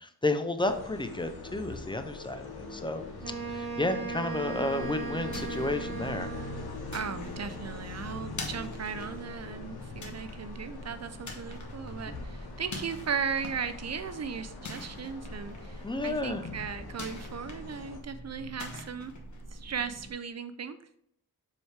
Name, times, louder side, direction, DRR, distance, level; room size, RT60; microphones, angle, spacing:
voice 1, 0.0-3.0 3.5-6.3 12.1-12.2 15.8-16.5, left 2 dB, 15° left, 8 dB, 0.4 m, -32 dB
sound 1, 0.6-18.0, left 4 dB, 80° left, 1.1 m, -43 dB
Wind instrument woodwind instrument, 3.2-6.7, right 6 dB, 70° right, 1.0 m, -37 dB
sound 2, 4.8-20.1, left 1 dB, 50° left, 1.2 m, -45 dB
voice 2, 6.9-19.1 19.5-20.8, right 6 dB, 45° right, 11 dB, 0.5 m, -37 dB
7.1 x 4.8 x 3.3 m, 0.69 s
wide cardioid pair, 175°, 37 cm